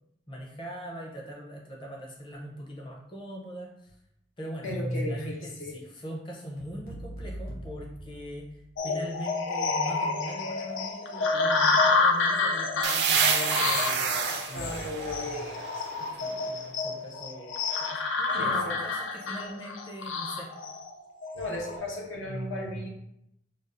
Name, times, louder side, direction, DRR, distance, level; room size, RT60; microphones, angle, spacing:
voice 1, 0.3-3.9 4.4-4.7 5.0-14.9 16.0-17.6 17.9-20.5 21.5-22.0, equal, 25° left, -1 dB, 0.6 m, -41 dB
voice 2, 4.6-5.7 14.5-15.8 18.3-18.8 21.3-22.9, left 1 dB, 80° left, -1 dB, 0.9 m, -34 dB
sound 1, 6.6-8.9, right 1 dB, 45° left, 1.0 m, -42 dB
sound 2, 8.8-21.8, left 3 dB, 65° left, 0.4 m, -29 dB
sound 3, 12.8-16.4, right 6 dB, 55° right, 0.4 m, -29 dB
5.1 x 2.4 x 2.5 m, 0.80 s
head